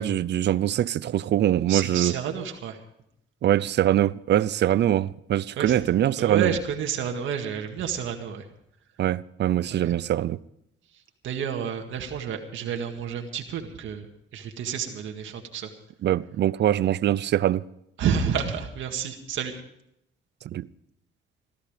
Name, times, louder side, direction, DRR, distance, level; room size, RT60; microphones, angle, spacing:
voice 1, 0.0-2.1 3.4-6.5 9.0-10.4 16.0-17.6 20.4-20.7, right 12 dB, 60° right, 0.6 m, -23 dB
voice 2, 1.7-2.8 5.6-5.8 6.2-8.5 9.7-10.0 10.9-14.1 14.3-15.7 18.0-19.5, right 7 dB, 80° right, 1.9 m, -30 dB
16.5 x 14.0 x 5.1 m
cardioid pair, 90°, 20 cm